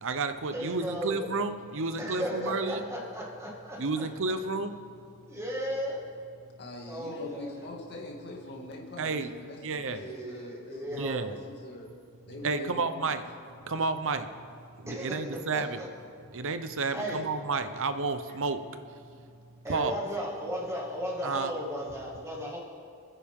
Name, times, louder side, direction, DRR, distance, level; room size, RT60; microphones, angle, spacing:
voice 1, 0.0-2.8 3.8-4.7 9.0-9.3 9.6-10.0 10.9-11.3 12.4-13.2 13.7-14.3 14.8-15.8 16.3-18.6 19.7-20.0 21.2-21.5, right 4 dB, 65° right, 10 dB, 0.9 m, -31 dB
voice 2, 0.5-1.3 2.0-4.3 5.3-6.0 6.9-7.7 9.8-11.4 14.9-15.9 16.9-17.2 19.6-22.6, equal, 15° right, -3 dB, 2.1 m, -36 dB
voice 3, 6.6-11.0 11.3-11.9 12.3-13.1 18.3-18.4, left 2 dB, 50° left, -1 dB, 2.2 m, -43 dB
27.0 x 10.0 x 3.7 m, 2.4 s
head